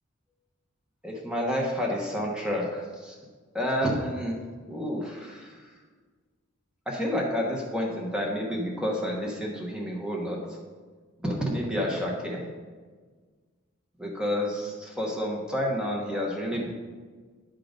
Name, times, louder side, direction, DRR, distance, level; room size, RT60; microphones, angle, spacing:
voice 1, 1.0-3.2 3.5-4.4 4.7-5.7 6.9-10.6 11.2-12.5 14.0-16.7, equal, 5° right, -2 dB, 1.0 m, -29 dB
10.5 x 3.8 x 5.1 m, 1.5 s
head